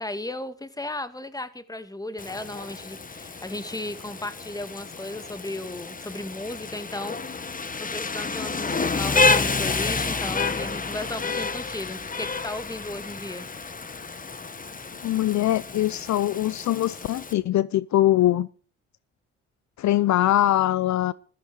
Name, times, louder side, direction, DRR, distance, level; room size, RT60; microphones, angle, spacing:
voice 1, 0.0-13.5, left 2 dB, 10° left, 2.1 m, -35 dB
Rain, 2.2-17.3, left 4 dB, 30° left, 1.6 m, -29 dB
voice 2, 15.0-18.5 19.8-21.1, left 13 dB, 65° left, 0.7 m, -22 dB
15.0 x 14.0 x 6.3 m
cardioid pair, 90°, 30 cm